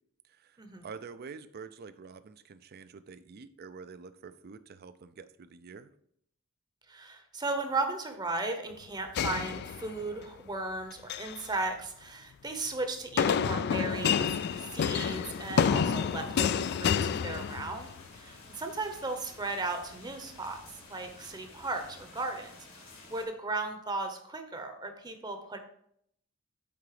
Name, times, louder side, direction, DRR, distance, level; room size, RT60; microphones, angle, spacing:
voice 1, 0.3-5.9, right 5 dB, 50° right, 13 dB, 0.4 m, -47 dB
voice 2, 6.9-20.6 20.9-22.5 23.1-25.6, right 3 dB, 20° right, 6 dB, 0.8 m, -36 dB
sound 1, 9.2-10.2 10.9-11.4 13.2-18.0, left 7 dB, 55° left, 0.3 m, -29 dB
sound 2, 13.9-23.2, left 2 dB, 75° left, 2.5 m, -52 dB
8.5 x 3.9 x 4.9 m, 0.71 s
head